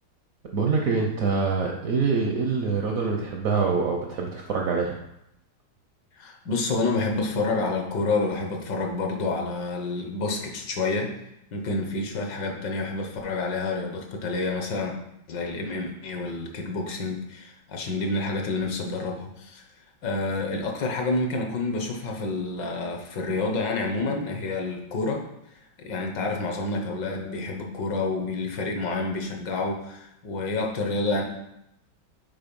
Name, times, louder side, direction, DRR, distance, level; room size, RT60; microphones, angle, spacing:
voice 1, 0.5-4.9, right 4 dB, 65° right, 1 dB, 0.8 m, -25 dB
voice 2, 6.2-11.1 11.5-15.0 15.3-19.6 20.0-25.2 25.8-31.2, left 3 dB, 65° left, 2 dB, 1.5 m, -28 dB
5.9 x 4.3 x 5.2 m, 0.83 s
omnidirectional pair, 2.2 m